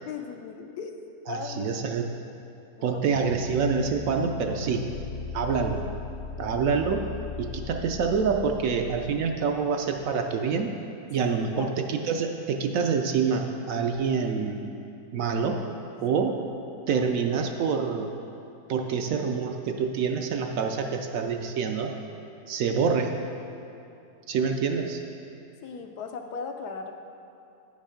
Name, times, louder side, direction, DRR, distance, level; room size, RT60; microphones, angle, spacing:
voice 1, 0.0-1.0 1.3-1.7 2.8-3.2 11.2-11.8 25.6-26.9, left 5 dB, 80° left, 5 dB, 1.2 m, -37 dB
voice 2, 1.3-2.1 2.8-4.9 5.3-5.8 6.4-7.1 7.4-10.7 11.1-14.7 15.1-15.6 16.0-16.4 16.9-18.1 18.7-21.9 22.5-23.2 24.3-25.0, right 5 dB, 70° right, 4 dB, 0.9 m, -26 dB
sound 1, 3.1-10.2, left 6 dB, 65° left, 0.9 m, -38 dB
9.8 x 5.4 x 5.0 m, 2.8 s
omnidirectional pair, 1.7 m